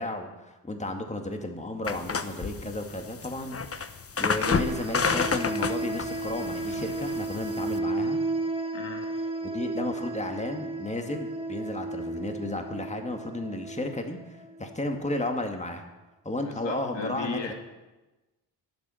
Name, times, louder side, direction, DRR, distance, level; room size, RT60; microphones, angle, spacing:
voice 1, 0.0-3.9 4.2-8.2 9.4-14.2 14.6-15.8 16.2-17.5, left 1 dB, 15° left, 4 dB, 2.1 m, -33 dB
sound 1, 1.9-7.8, left 5 dB, 30° left, 1.0 m, -30 dB
sound 2, 4.5-14.9, right 2 dB, 10° right, 1.4 m, -33 dB
voice 2, 8.7-9.1 16.4-17.5, left 4 dB, 70° left, 3 dB, 2.2 m, -36 dB
21.0 x 8.1 x 5.7 m, 1.1 s
cardioid pair, 65°, 44 cm